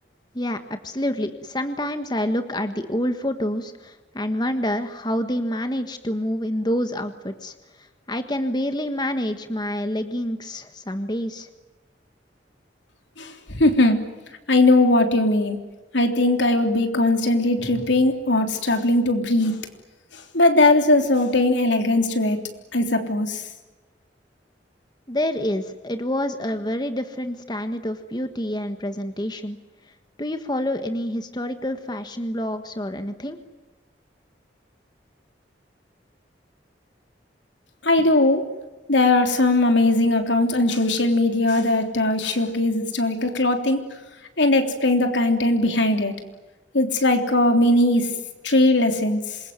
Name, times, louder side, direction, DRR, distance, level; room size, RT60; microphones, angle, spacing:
voice 1, 0.3-11.5 25.1-29.6 30.2-33.4, left 1 dB, 25° left, 8 dB, 1.5 m, -27 dB
voice 2, 13.2-14.0 14.5-15.6 15.9-19.6 20.1-22.4 22.7-23.4 37.8-38.5 38.9-43.8 44.4-46.1 46.7-49.4, left 2 dB, 85° left, 5 dB, 3.4 m, -19 dB
27.0 x 22.0 x 9.4 m, 1.2 s
head